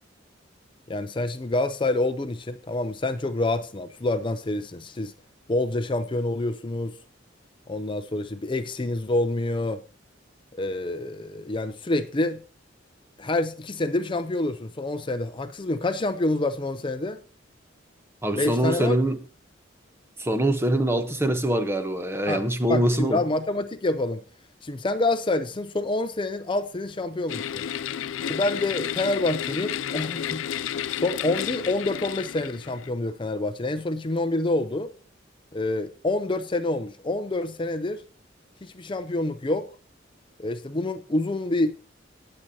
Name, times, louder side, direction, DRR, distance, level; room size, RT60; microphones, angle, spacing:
voice 1, 0.9-5.1 5.5-7.0 7.7-9.8 10.5-12.4 13.2-17.2 18.3-19.0 22.3-22.4 22.7-24.2 24.6-27.6 28.2-34.9 35.5-38.0 38.6-39.7 40.4-41.8, left 2 dB, 25° left, 0.5 m, -27 dB
voice 2, 18.2-19.2 20.2-23.2, right 1 dB, 15° right, 0.9 m, -24 dB
sound 1, 27.3-32.9, left 9 dB, 85° left, 0.4 m, -31 dB
18.5 x 7.6 x 2.8 m
head